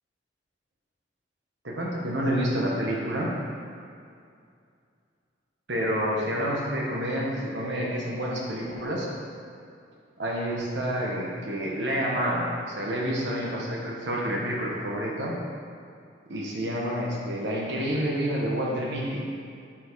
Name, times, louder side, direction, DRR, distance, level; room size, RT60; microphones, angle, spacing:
voice 1, 1.6-3.3 5.7-9.1 10.2-15.4 16.3-19.2, equal, 70° right, -3 dB, 1.2 m, -28 dB
6.1 x 4.4 x 4.6 m, 2.4 s
head